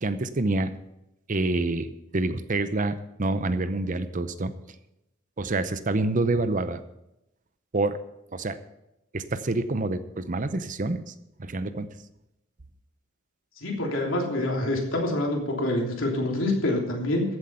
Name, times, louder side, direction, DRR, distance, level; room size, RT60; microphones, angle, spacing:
voice 1, 0.0-0.7 1.3-4.5 5.4-6.8 7.7-8.0 8.3-8.6 9.1-11.1 11.4-11.9, right 2 dB, 40° right, 12 dB, 0.7 m, -27 dB
voice 2, 13.6-17.2, left 1 dB, 75° left, 0 dB, 3.2 m, -26 dB
14.5 x 8.0 x 5.6 m, 0.87 s
head